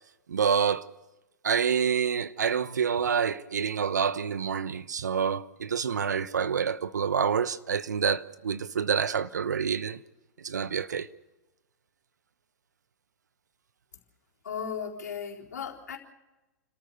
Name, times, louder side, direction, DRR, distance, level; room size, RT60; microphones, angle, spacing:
voice 1, 0.3-0.9 1.4-10.0 10.4-11.1, right 7 dB, 80° right, 1.0 m, -27 dB
voice 2, 14.4-16.0, left 7 dB, 75° left, 4.0 m, -36 dB
29.5 x 13.5 x 6.9 m
hypercardioid pair, 110°, 9 cm